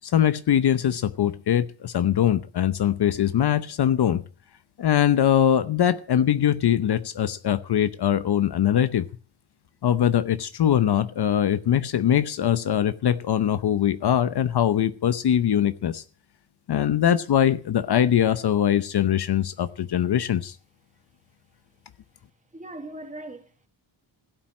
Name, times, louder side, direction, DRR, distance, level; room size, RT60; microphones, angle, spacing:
voice 1, 0.0-4.2 4.8-9.1 9.8-16.0 16.7-20.5, left 10 dB, 55° left, 0.8 m, -22 dB
voice 2, 22.5-23.7, right 1 dB, 15° right, 1.9 m, -39 dB
16.5 x 9.2 x 7.5 m
wide cardioid pair, 180°, 47 cm